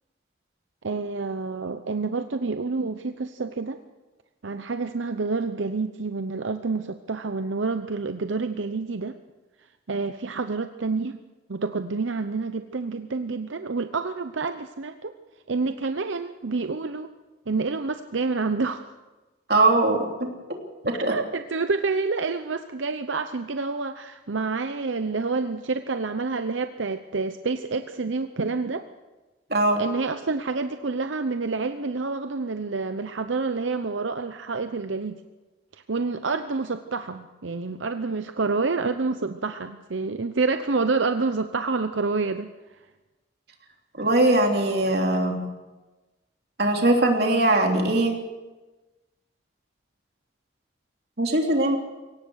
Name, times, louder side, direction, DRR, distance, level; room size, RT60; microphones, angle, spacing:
voice 1, 0.8-3.8 4.4-9.1 9.9-11.2 11.5-15.1 15.5-17.1 17.5-18.8 20.9-28.8 29.8-35.2 35.9-42.5, right 4 dB, 90° right, 9 dB, 0.8 m, -28 dB
voice 2, 19.5-20.3 20.8-21.1 29.5-29.8 44.0-45.4 46.6-48.1 51.2-51.8, right 2 dB, 55° right, 2 dB, 3.3 m, -21 dB
22.5 x 18.0 x 6.4 m, 1.2 s
head